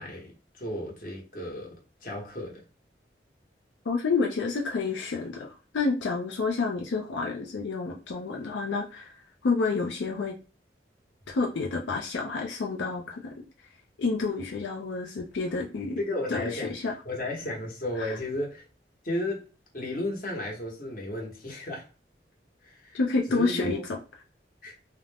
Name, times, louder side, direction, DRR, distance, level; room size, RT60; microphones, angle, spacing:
voice 1, 0.0-1.8 2.0-2.6 16.0-18.6 19.0-19.5 19.7-21.9 22.6-23.0 23.3-23.8 24.6-24.7, left 1 dB, 50° left, 1.0 m, -34 dB
voice 2, 3.9-9.1 9.4-10.3 11.3-13.4 14.0-16.0 16.3-16.9 18.0-18.1 22.9-24.0, left 4 dB, 90° left, 0.4 m, -29 dB
2.4 x 2.1 x 3.3 m
head